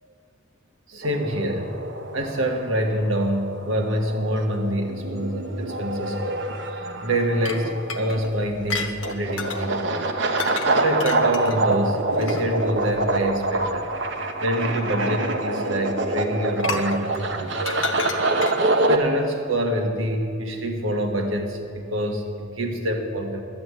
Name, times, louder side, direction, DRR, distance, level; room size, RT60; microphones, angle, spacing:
voice 1, 0.9-1.8 2.1-13.9 14.4-18.3 18.6-23.4, right 1 dB, 85° right, 3 dB, 1.5 m, -26 dB
sound 1, 1.0-19.0, right 2 dB, 65° right, 1.0 m, -26 dB
sound 2, 7.4-9.6 10.4-10.7 11.0-12.7 13.6-13.7 16.6-18.7, left 3 dB, 75° left, 1.0 m, -32 dB
12.0 x 8.6 x 8.1 m, 2.6 s
head